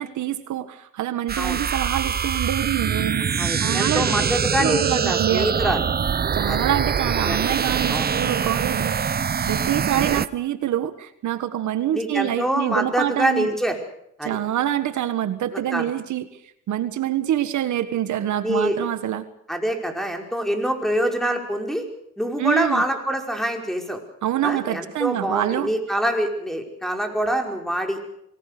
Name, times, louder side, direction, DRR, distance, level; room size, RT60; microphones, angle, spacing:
voice 1, 0.0-4.2 4.6-5.7 6.3-8.9 9.5-13.5 14.2-16.3 16.7-19.2 22.4-22.8 24.2-25.7, right 12 dB, 70° right, 11 dB, 1.6 m, -26 dB
sound 1, 1.3-10.3, right 7 dB, 30° right, 0.8 m, -24 dB
voice 2, 3.4-5.9 6.5-6.6 7.3-7.5 7.9-8.1 11.9-13.8 14.2-14.4 15.5-15.9 18.4-18.8 19.5-21.8 22.2-24.0 24.4-28.0, right 1 dB, ahead, 3 dB, 5.3 m, -25 dB
26.0 x 19.5 x 6.7 m, 0.76 s
cardioid pair, 90°, 30 cm